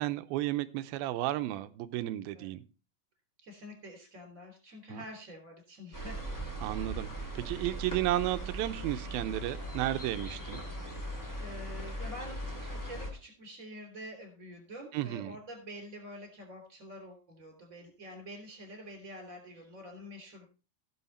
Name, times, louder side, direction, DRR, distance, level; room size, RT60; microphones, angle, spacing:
voice 1, 0.0-2.6 4.9-5.0 6.6-10.6 14.9-15.4, right 14 dB, 85° right, 2.5 m, -33 dB
voice 2, 3.4-6.2 6.6-7.0 11.4-20.5, equal, 20° right, 3.8 m, -47 dB
sound 1, 5.9-13.1, right 1 dB, 10° left, 0.9 m, -39 dB
17.0 x 6.4 x 4.2 m
omnidirectional pair, 4.2 m